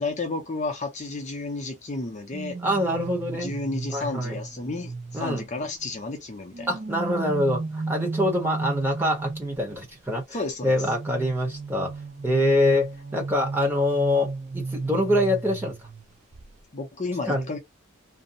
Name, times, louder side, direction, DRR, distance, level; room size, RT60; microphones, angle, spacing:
voice 1, 0.0-2.6 3.3-6.7 10.3-10.8 16.7-17.6, left 3 dB, 35° left, 0.6 m, -32 dB
sound 1, 2.3-5.9 6.5-9.8 10.8-16.0 16.3-16.6, right 3 dB, 30° right, 0.3 m, -35 dB
voice 2, 2.6-3.5 3.9-4.4 5.1-5.5 6.7-10.4 10.6-11.9 12.2-15.7 17.3-17.5, left 1 dB, 10° right, 0.9 m, -25 dB
2.7 x 2.1 x 2.6 m
head